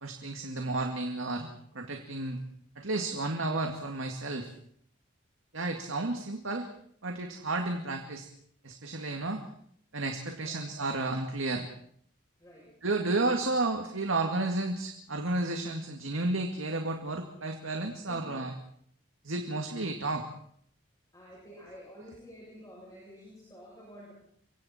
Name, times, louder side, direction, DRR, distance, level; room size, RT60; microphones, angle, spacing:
voice 1, 0.0-1.5 1.7-2.4 2.8-4.5 5.5-6.7 7.0-8.3 8.6-9.4 9.9-11.7 12.8-18.5 19.2-20.3, right 2 dB, 85° right, 4 dB, 2.1 m, -32 dB
voice 2, 12.4-12.7 18.1-18.4 21.1-24.1, equal, 20° left, -5 dB, 7.3 m, -50 dB
29.0 x 24.0 x 4.3 m, 0.63 s
head